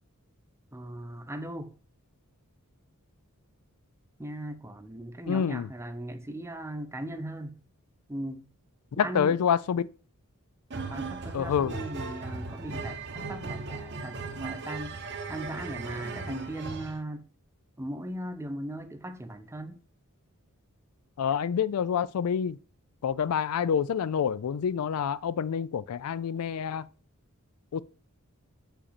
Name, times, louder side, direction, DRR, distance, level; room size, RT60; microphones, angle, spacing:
voice 1, 0.7-1.7 4.2-7.6 8.1-8.4 8.9-9.4 10.9-17.2 17.8-19.8, right 1 dB, 10° right, 0.6 m, -38 dB
voice 2, 5.3-5.7 9.0-9.9 11.3-11.8 21.2-22.6 23.0-26.9 27.7-27.8, left 7 dB, 80° left, 0.4 m, -27 dB
sound 1, 10.7-17.0, right 4 dB, 50° right, 0.9 m, -37 dB
7.2 x 5.7 x 4.1 m
head